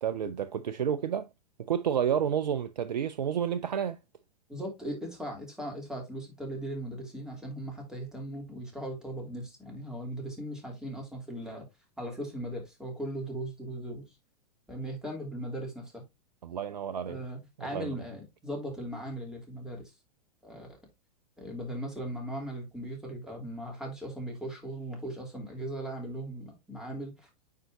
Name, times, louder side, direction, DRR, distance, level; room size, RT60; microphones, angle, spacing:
voice 1, 0.0-1.3 1.7-4.0 16.4-17.2 17.6-17.9, right 8 dB, 80° right, 0.5 m, -30 dB
voice 2, 4.5-11.7 12.0-14.0 14.7-16.0 17.0-19.9 20.4-20.8 21.4-27.3, right 1 dB, 5° right, 3.3 m, -38 dB
9.4 x 4.5 x 2.6 m
figure-of-eight pair, 100°, 21 cm